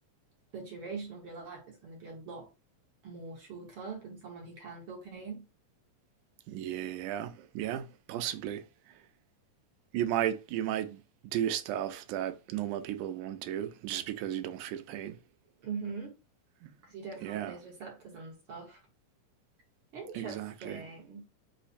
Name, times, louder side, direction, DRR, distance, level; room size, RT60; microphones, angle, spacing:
voice 1, 0.5-2.5 3.0-5.5 15.6-16.2 16.8-18.8 19.9-21.3, right 4 dB, 60° right, 1.5 m, -42 dB
voice 2, 6.5-8.6 9.9-15.2 16.6-16.7 17.2-17.6 20.1-20.9, right 11 dB, 90° right, 2.1 m, -34 dB
5.5 x 2.1 x 4.1 m
omnidirectional pair, 3.5 m